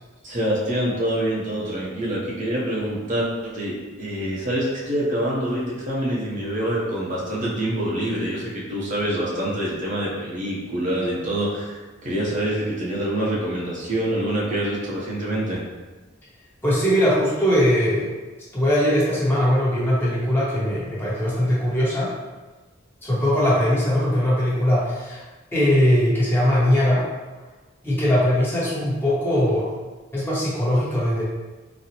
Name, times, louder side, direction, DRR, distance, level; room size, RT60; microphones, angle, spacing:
voice 1, 0.2-15.6, right 1 dB, 40° right, -6 dB, 0.7 m, -26 dB
voice 2, 16.6-18.1 18.5-22.1 23.0-25.2 25.5-27.0 27.8-29.7 30.1-31.2, equal, 10° left, -8 dB, 0.8 m, -20 dB
4.0 x 2.0 x 2.8 m, 1.2 s
head